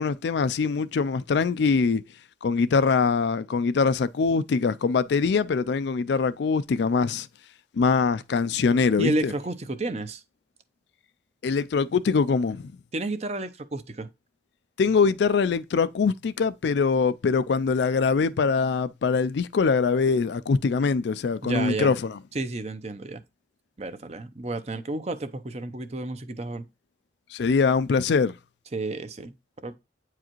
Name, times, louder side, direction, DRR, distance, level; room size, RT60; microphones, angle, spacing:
voice 1, 0.0-2.0 2.4-7.3 7.7-9.3 11.4-12.6 14.8-22.1 27.3-28.3, left 5 dB, 65° left, 0.4 m, -23 dB
voice 2, 9.0-10.2 12.9-14.1 21.4-21.9 22.3-23.2 23.8-26.7 28.7-29.3 29.6-29.8, right 2 dB, 35° right, 0.6 m, -31 dB
8.7 x 4.8 x 3.0 m
head